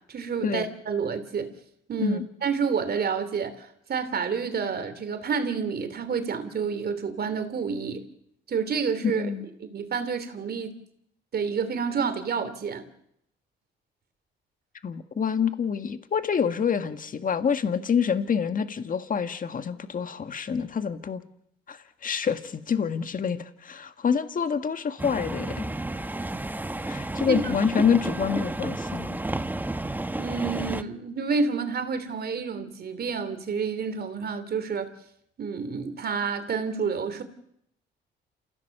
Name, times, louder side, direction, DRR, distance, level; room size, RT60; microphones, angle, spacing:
voice 1, 0.1-1.5 1.9-8.1 8.5-9.3 9.7-10.8 11.3-12.9 27.3-27.4 30.2-34.9 35.4-37.2, right 5 dB, 50° right, 3.1 m, -29 dB
voice 2, 9.2-9.5 14.8-21.2 21.7-25.6 26.8-29.2, left 7 dB, 45° left, 1.7 m, -27 dB
sound 1, 25.0-30.8, right 2 dB, 10° right, 1.0 m, -31 dB
28.5 x 16.5 x 6.7 m
cardioid pair, 90°, 20 cm